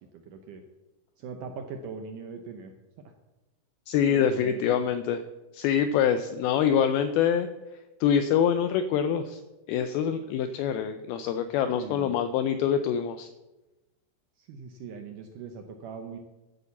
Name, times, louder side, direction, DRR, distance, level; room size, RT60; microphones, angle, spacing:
voice 1, 0.1-0.6 1.2-2.7 4.1-4.7 11.7-12.1 14.4-16.2, right 5 dB, 80° right, 5 dB, 1.9 m, -40 dB
voice 2, 3.9-5.2 5.5-7.5 8.0-9.4 9.7-13.3, left 8 dB, 80° left, 10 dB, 2.3 m, -25 dB
12.0 x 8.3 x 7.1 m, 1.1 s
omnidirectional pair, 4.7 m